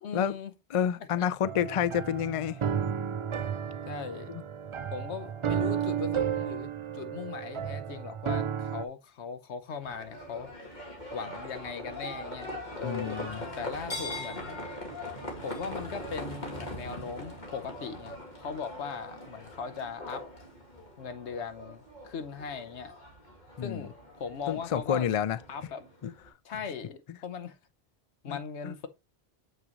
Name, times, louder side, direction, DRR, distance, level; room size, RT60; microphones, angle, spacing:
voice 1, 0.0-0.5 1.2-1.3 1.7-1.8 3.9-4.3 4.9-10.7 11.1-13.2 13.6-14.6 15.4-20.2 21.0-22.9 23.6-25.1 25.5-25.9 26.4-27.6 28.2-28.9, left 6 dB, 90° left, 1.2 m, -39 dB
voice 2, 0.7-2.6 4.3-4.4 12.8-13.4 23.6-23.9 24.5-25.4 26.0-26.1 28.3-28.4 28.6-28.7, left 9 dB, 60° left, 0.3 m, -29 dB
sound 1, 1.4-8.8, right 8 dB, 60° right, 0.3 m, -33 dB
Livestock farm animals working animals, 9.8-26.3, left 1 dB, 45° left, 2.2 m, -41 dB
7.3 x 6.1 x 3.0 m
omnidirectional pair, 1.1 m